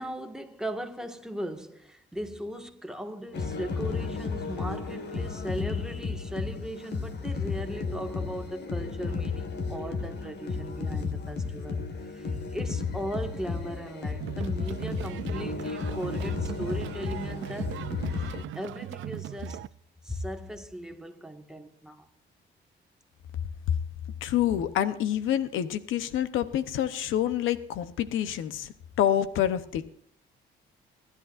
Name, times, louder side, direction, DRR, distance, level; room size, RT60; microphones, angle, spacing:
voice 1, 0.0-17.8 18.5-19.7 20.0-22.1, equal, 5° right, 1.8 m, -38 dB
sound 1, 3.3-18.4, left 4 dB, 60° left, 1.9 m, -33 dB
sound 2, 14.2-19.7, right 15 dB, 75° right, 0.5 m, -39 dB
voice 2, 24.2-29.9, left 11 dB, 90° left, 0.9 m, -27 dB
28.5 x 11.5 x 2.6 m
cardioid pair, 90°, 20 cm